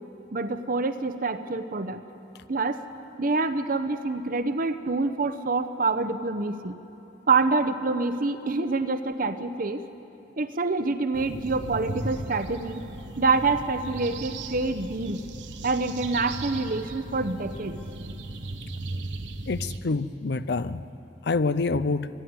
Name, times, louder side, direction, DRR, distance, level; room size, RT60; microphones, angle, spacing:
voice 1, 0.3-2.0 2.5-2.8 3.2-6.7 7.3-9.8 10.4-12.9 13.2-15.2 15.6-17.8, right 3 dB, 50° right, 11 dB, 0.9 m, -26 dB
sound 1, 11.1-19.8, right 2 dB, 80° right, 1.1 m, -37 dB
voice 2, 19.5-20.8 21.2-22.1, left 3 dB, 65° left, 14 dB, 0.6 m, -26 dB
25.0 x 11.0 x 9.6 m, 2.9 s
head